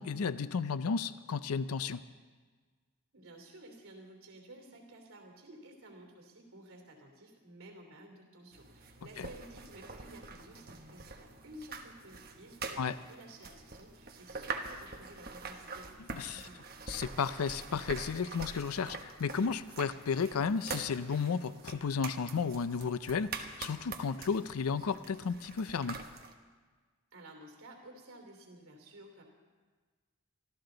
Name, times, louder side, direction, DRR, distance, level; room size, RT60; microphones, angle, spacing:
voice 1, 0.0-2.0 9.2-9.3 12.8-13.0 16.1-16.5 16.9-26.1, left 5 dB, 90° left, 14 dB, 0.5 m, -33 dB
voice 2, 3.1-16.8 27.1-29.2, right 1 dB, 70° right, 2 dB, 3.0 m, -53 dB
sound 1, 8.5-26.3, right 4 dB, 45° right, 1.2 m, -45 dB
25.5 x 13.5 x 3.9 m, 1.4 s
head